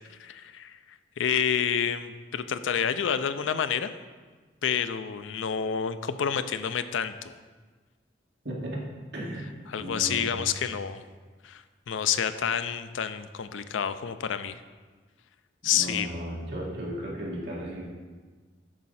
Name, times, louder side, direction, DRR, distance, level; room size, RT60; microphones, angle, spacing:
voice 1, 0.1-3.9 4.6-7.4 9.7-11.0 11.4-14.6 15.6-16.1, left 8 dB, 85° left, 12 dB, 0.4 m, -29 dB
voice 2, 8.4-8.8 9.1-9.5 9.8-10.4 15.7-17.8, right 1 dB, 60° right, -4 dB, 2.1 m, -35 dB
8.6 x 6.4 x 4.2 m, 1.4 s
head